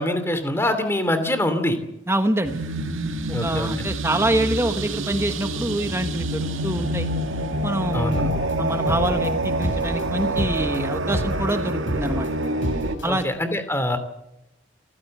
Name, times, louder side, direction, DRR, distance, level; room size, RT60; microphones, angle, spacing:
voice 1, 0.0-1.8 3.3-3.7 7.9-8.3 13.0-14.0, left 1 dB, 10° left, 9 dB, 2.7 m, -24 dB
voice 2, 2.1-2.6 3.3-7.1 7.6-8.3 8.6-12.3 13.0-13.2, right 1 dB, 15° right, 8 dB, 1.2 m, -25 dB
sound 1, 2.4-13.0, right 1 dB, 80° right, 2.0 m, -27 dB
sound 2, 7.9-13.2, equal, 70° left, 6.4 m, -31 dB
27.5 x 15.0 x 7.8 m, 0.89 s
head